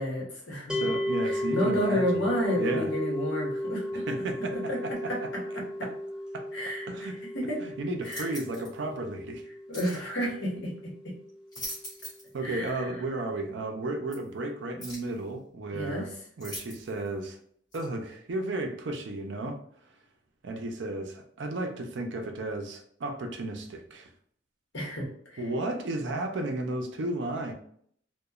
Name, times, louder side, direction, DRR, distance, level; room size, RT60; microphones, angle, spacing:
voice 1, 0.0-0.9 1.2-4.1 4.5-5.2 6.5-7.1 7.3-7.6 8.0-8.3 9.7-10.7 11.0-11.1 12.4-12.9 15.7-16.1 24.7-25.4, equal, 60° left, -3 dB, 1.0 m, -31 dB
sound 1, 0.7-11.9, equal, 5° right, 0.3 m, -34 dB
voice 2, 0.7-2.3 2.5-2.9 3.9-4.6 4.8-4.9 6.3-6.4 6.9-7.2 7.6-9.4 12.3-16.1 16.4-17.4 17.7-19.6 20.4-24.1 25.4-27.5, right 2 dB, 60° right, 3 dB, 0.5 m, -33 dB
sound 2, 8.0-8.7 9.7-10.0 11.3-12.3 12.7-12.8 14.1-14.2 14.8-15.1 16.4-17.1 17.7-17.9, left 1 dB, 20° left, 1.0 m, -41 dB
2.9 x 2.2 x 2.3 m, 0.63 s
head